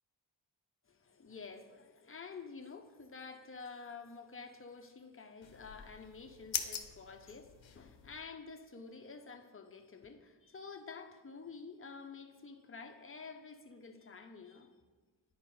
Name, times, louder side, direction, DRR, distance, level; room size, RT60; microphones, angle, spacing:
voice 1, 0.9-14.7, left 4 dB, 30° left, 5 dB, 0.8 m, -50 dB
sound 1, 5.4-8.2, left 8 dB, 80° left, 0.7 m, -43 dB
9.6 x 4.7 x 4.2 m, 1.4 s
cardioid pair, 50°, 45 cm